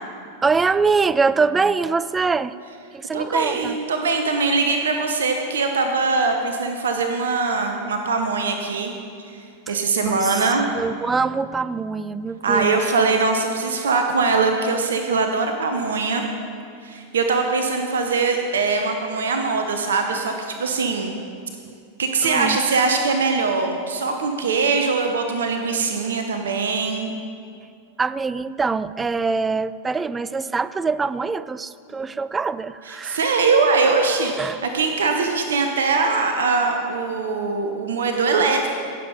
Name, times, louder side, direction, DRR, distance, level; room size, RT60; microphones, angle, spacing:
voice 1, 0.4-2.5 2.9-3.8 9.7-10.5 10.8-12.8 22.2-22.6 28.0-33.2 34.2-34.6, right 4 dB, 15° right, 16 dB, 0.3 m, -24 dB
voice 2, 3.1-8.9 9.3-10.6 12.4-16.3 16.8-21.1 22.0-27.1 32.9-38.7, right 4 dB, 65° right, 4 dB, 0.8 m, -22 dB
16.5 x 7.1 x 5.1 m, 2.5 s
figure-of-eight pair, 90°, 0 cm